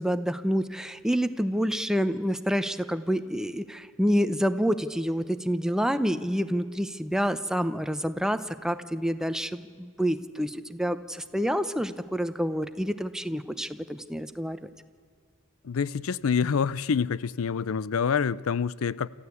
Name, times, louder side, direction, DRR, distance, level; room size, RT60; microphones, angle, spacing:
voice 1, 0.0-14.7, equal, 5° right, 11 dB, 0.8 m, -28 dB
voice 2, 15.6-19.1, left 6 dB, 80° left, 20 dB, 0.5 m, -27 dB
27.0 x 14.5 x 8.4 m, 2.1 s
head